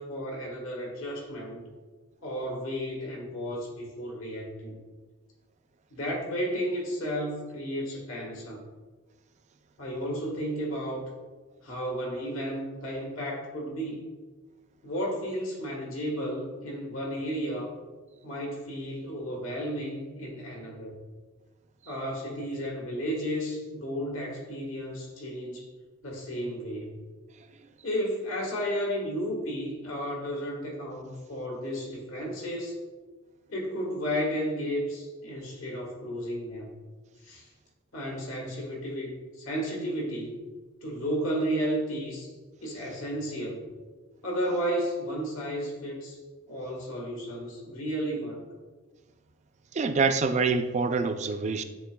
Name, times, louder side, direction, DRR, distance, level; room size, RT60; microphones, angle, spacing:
voice 1, 0.0-1.7 2.2-4.8 5.9-8.6 9.8-11.0 11.6-14.1 14.8-17.7 18.2-21.0 21.8-25.7 26.0-26.9 27.8-32.7 33.5-36.7 37.2-37.5 37.9-40.3 40.8-42.3 42.6-43.6 44.2-46.2 46.5-48.4, equal, 75° left, -2 dB, 1.4 m, -33 dB
voice 2, 49.7-51.6, right 4 dB, 35° right, 8 dB, 0.3 m, -25 dB
11.0 x 3.8 x 2.2 m, 1.3 s
head